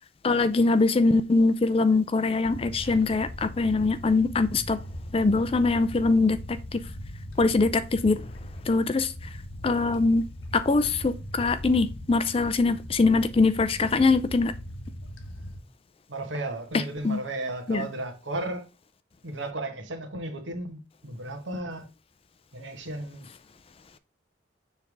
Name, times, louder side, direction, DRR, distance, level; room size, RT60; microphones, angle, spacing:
voice 1, 0.2-4.8 5.1-6.8 7.4-8.3 8.6-9.3 9.6-10.3 10.5-14.5 16.7-17.2 17.7-17.9, left 3 dB, 30° left, 0.4 m, -23 dB
sound 1, 2.4-15.6, equal, 85° left, 1.1 m, -40 dB
voice 2, 16.1-18.7 19.2-21.9 22.5-23.3, right 2 dB, 75° right, 1.4 m, -34 dB
7.0 x 3.4 x 4.6 m
head